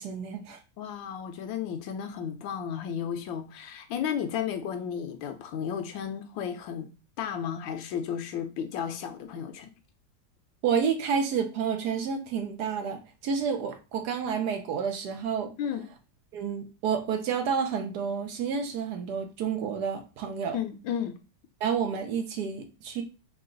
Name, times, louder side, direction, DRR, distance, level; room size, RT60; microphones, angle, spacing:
voice 1, 0.0-0.6 10.6-15.5 16.3-20.6 21.6-23.0, right 6 dB, 70° right, 1.1 m, -30 dB
voice 2, 0.8-6.9 7.2-9.7 15.6-15.9 20.5-21.1, left 8 dB, 90° left, 1.4 m, -33 dB
4.8 x 2.3 x 3.8 m
omnidirectional pair, 2.0 m